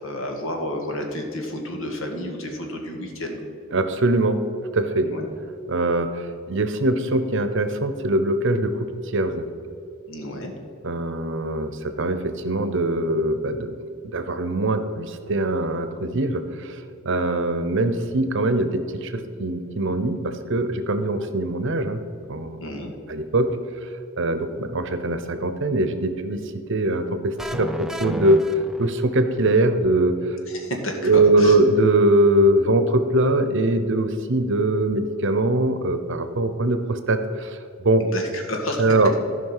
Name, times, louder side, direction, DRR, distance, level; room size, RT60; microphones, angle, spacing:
voice 1, 0.0-3.4 5.0-5.3 10.1-10.5 22.6-22.9 30.5-31.6 38.0-38.8, left 1 dB, 75° left, 2 dB, 1.8 m, -31 dB
voice 2, 3.7-4.4 4.7-5.1 5.7-9.4 10.8-13.8 14.0-22.0 22.3-22.6 23.1-23.5 23.8-23.9 24.2-28.5 28.8-30.4 31.0-38.0 38.8-39.1, right 2 dB, 65° right, 9 dB, 0.8 m, -22 dB
sound 1, 27.4-29.4, equal, ahead, 0.4 m, -32 dB
14.0 x 5.4 x 5.7 m, 2.5 s
head